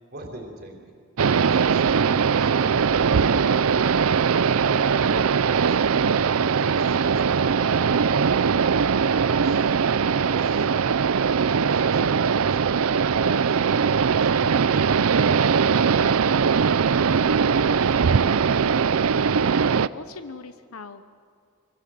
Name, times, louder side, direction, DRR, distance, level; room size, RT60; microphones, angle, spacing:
voice 1, 0.1-0.8 1.5-4.0 4.6-5.8 6.5-8.5 8.9-9.7 10.1-10.7 11.5-15.2, right 1 dB, 45° right, 1 dB, 3.6 m, -41 dB
sound 1, 1.2-19.9, right 6 dB, 75° right, 0.5 m, -21 dB
voice 2, 17.7-18.9 19.6-21.0, left 4 dB, 80° left, 9 dB, 1.0 m, -43 dB
24.5 x 24.0 x 7.7 m, 2.2 s
head